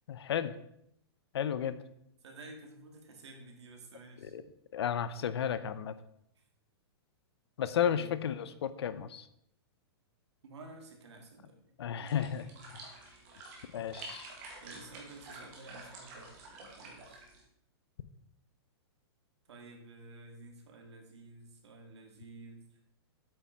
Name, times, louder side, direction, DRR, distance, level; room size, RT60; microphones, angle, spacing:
voice 1, 0.1-0.5 1.3-1.8 4.2-4.4 4.7-5.9 7.6-9.3 11.8-12.8 13.7-14.3, left 9 dB, 75° left, 13 dB, 0.7 m, -33 dB
voice 2, 2.2-4.3 6.4-6.5 7.8-8.5 10.4-11.6 14.6-17.3 19.5-22.6, right 2 dB, 90° right, 3 dB, 2.1 m, -52 dB
sound 1, 12.0-17.4, right 3 dB, 30° right, 1.9 m, -49 dB
8.3 x 5.9 x 4.4 m, 0.76 s
hypercardioid pair, 170°, 14 cm